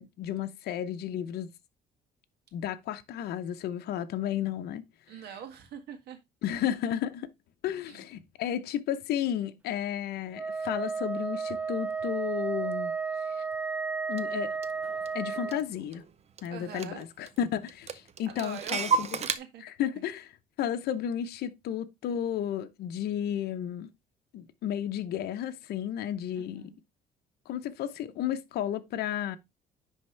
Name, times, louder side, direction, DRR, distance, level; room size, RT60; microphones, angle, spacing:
voice 1, 0.0-1.5 2.5-4.8 6.4-7.3 7.6-12.9 13.3-13.4 14.1-14.6 15.1-16.0 16.4-19.2 19.6-20.3 20.6-23.9 24.3-26.7 27.5-29.4, left 10 dB, 70° left, 0.7 m, -33 dB
voice 2, 5.1-6.2 7.9-8.0 16.5-17.1 18.3-18.8 19.2-19.6 26.4-26.8, right 8 dB, 75° right, 1.8 m, -43 dB
Wind instrument woodwind instrument, 10.3-15.7, right 5 dB, 10° right, 0.4 m, -33 dB
Clock, 14.2-14.3 14.6-16.1 16.4-16.5 16.7-17.4 17.7-19.4, right 5 dB, 40° right, 0.7 m, -32 dB
10.0 x 3.5 x 3.3 m
cardioid pair, 110°, 17 cm